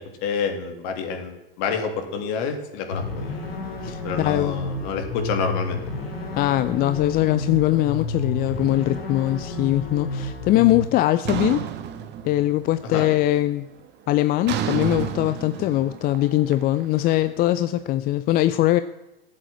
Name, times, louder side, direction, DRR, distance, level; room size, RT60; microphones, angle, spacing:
voice 1, 0.0-3.4 4.0-5.8 12.8-13.1, left 5 dB, 50° left, 5 dB, 2.8 m, -28 dB
sound 1, 2.9-10.9, left 3 dB, 85° left, 3.5 m, -31 dB
voice 2, 3.8-4.6 6.4-11.6 12.2-13.7 14.1-18.8, left 15 dB, 30° left, 13 dB, 0.5 m, -21 dB
sound 2, 11.3-12.8 13.1-13.6 14.5-17.5, right 9 dB, 35° right, 1.5 m, -30 dB
14.0 x 7.7 x 9.2 m, 0.98 s
hypercardioid pair, 95°, 29 cm